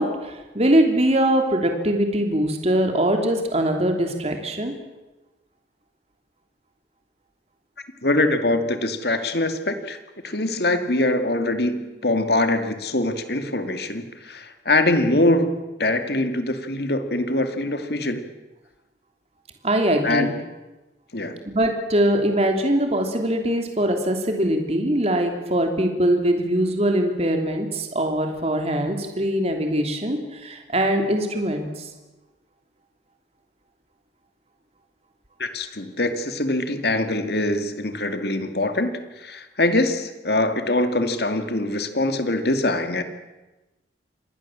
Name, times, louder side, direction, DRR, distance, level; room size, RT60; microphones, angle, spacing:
voice 1, 0.0-4.7 19.6-20.3 21.5-31.9, right 1 dB, 35° right, 4 dB, 3.0 m, -22 dB
voice 2, 8.0-10.0 10.2-18.2 20.0-20.3 21.1-21.4 35.4-43.0, left 2 dB, 60° left, 8 dB, 2.2 m, -23 dB
26.5 x 20.0 x 7.4 m, 1.1 s
head